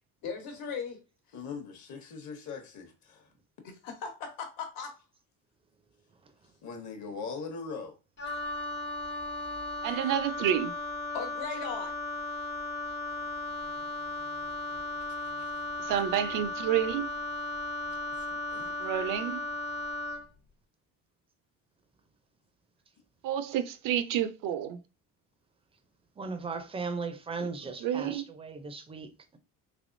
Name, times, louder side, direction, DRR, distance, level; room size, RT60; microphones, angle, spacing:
voice 1, 0.2-1.0 3.8-4.9 11.1-11.9, left 6 dB, 85° left, 1.2 m, -37 dB
voice 2, 1.3-3.3 6.6-8.0 8.3-8.4 15.2-15.5 18.2-18.8, left 5 dB, 55° left, 0.9 m, -41 dB
Wind instrument woodwind instrument, 8.2-20.3, left 2 dB, 30° left, 0.6 m, -36 dB
voice 3, 9.8-10.7 15.8-17.1 18.8-19.4 23.2-24.8 27.4-27.5 27.8-28.2, right 10 dB, 65° right, 0.5 m, -29 dB
voice 4, 26.2-29.1, right 4 dB, 15° right, 0.4 m, -37 dB
3.4 x 3.0 x 2.5 m
cardioid pair, 125°, 35 cm